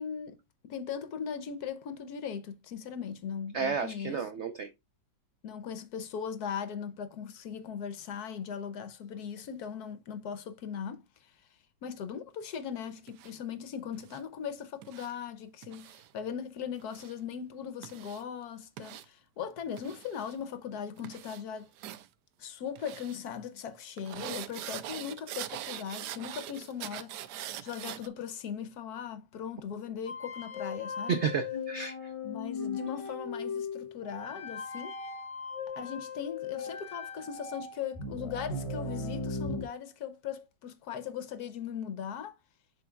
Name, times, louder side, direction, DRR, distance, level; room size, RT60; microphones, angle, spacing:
voice 1, 0.0-4.3 5.4-11.3 11.8-21.7 22.4-27.2 27.6-31.3 32.2-35.0 35.8-42.3, left 7 dB, 65° left, 1.1 m, -39 dB
voice 2, 3.5-4.7 31.1-32.1, right 6 dB, 90° right, 0.6 m, -32 dB
Icy car, 13.1-13.3 14.0-14.2 14.8-15.1 15.6-16.1 16.8-17.1 17.8-18.2 18.8-19.0 19.8-20.4 21.0-21.4 21.8-22.1 22.8-23.2 24.0-28.1, right 12 dB, 75° right, 1.1 m, -42 dB
sound 1, 30.1-39.6, left 4 dB, 50° left, 0.4 m, -38 dB
11.0 x 3.9 x 2.2 m
omnidirectional pair, 2.0 m